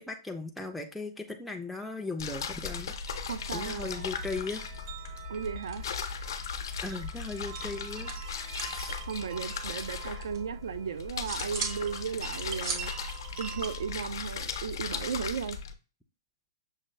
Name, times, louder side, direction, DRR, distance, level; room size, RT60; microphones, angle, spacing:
voice 1, 0.0-3.0 3.5-4.6 6.8-8.1 8.7-9.0 10.0-10.2, left 3 dB, ahead, 0.4 m, -37 dB
sound 1, 2.2-15.7, left 5 dB, 70° left, 0.7 m, -37 dB
sound 2, 3.1-14.0, right 8 dB, 35° right, 0.6 m, -47 dB
voice 2, 3.3-4.1 5.3-5.9 9.1-12.9 13.4-15.6, right 7 dB, 85° right, 0.4 m, -35 dB
sound 3, 4.6-4.8 5.0-6.3 6.5-8.8 9.1-10.4 10.8-11.8 12.2-14.3, right 4 dB, 60° right, 1.0 m, -41 dB
6.3 x 2.2 x 3.2 m
hypercardioid pair, 160°, 2 cm